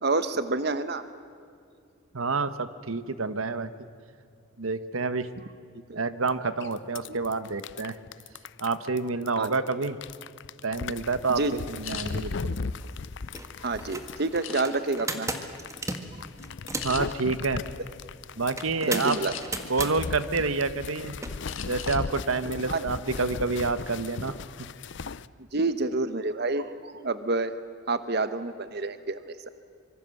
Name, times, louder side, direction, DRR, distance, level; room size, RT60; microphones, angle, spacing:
voice 1, 0.0-1.0 5.9-6.0 7.1-7.2 9.4-9.5 11.4-11.6 13.6-15.3 18.9-19.3 22.7-22.8 25.5-27.5 27.9-29.5, right 3 dB, 50° right, 12 dB, 1.0 m, -28 dB
voice 2, 2.1-3.7 4.6-5.3 5.9-8.0 8.6-10.0 10.6-12.6 16.8-17.6 18.4-19.1 19.7-21.2 21.7-24.3, right 3 dB, 80° right, 13 dB, 1.2 m, -28 dB
sound 1, 6.3-6.4 6.6-25.3, left 4 dB, 55° left, 0.6 m, -38 dB
sound 2, 11.8-12.1 12.7-13.7 14.4-15.0 15.5-15.8 16.1-16.3 16.8-17.0 19.0-19.7 20.2-20.9 21.4-22.1 22.4-22.6 23.0-23.4, left 10 dB, 75° left, 2.0 m, -39 dB
sound 3, 12.8-12.9 13.2-13.5 13.8-17.0 18.6-19.9 21.2-21.3, right 2 dB, 15° right, 1.7 m, -34 dB
25.5 x 24.0 x 7.7 m, 2.3 s
head